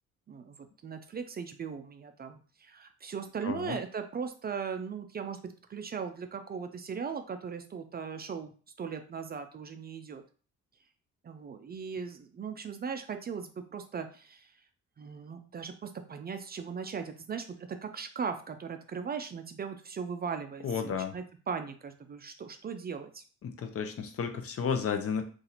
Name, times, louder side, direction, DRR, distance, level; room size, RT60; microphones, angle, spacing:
voice 1, 0.3-5.4 5.7-8.5 8.8-10.2 11.2-14.5 15.0-23.2, right 6 dB, 35° right, 7 dB, 0.4 m, -38 dB
voice 2, 3.4-3.8 20.6-21.2 23.4-25.2, left 6 dB, 50° left, 6 dB, 0.6 m, -32 dB
2.8 x 2.5 x 4.1 m, 0.39 s
cardioid pair, 90°, 30 cm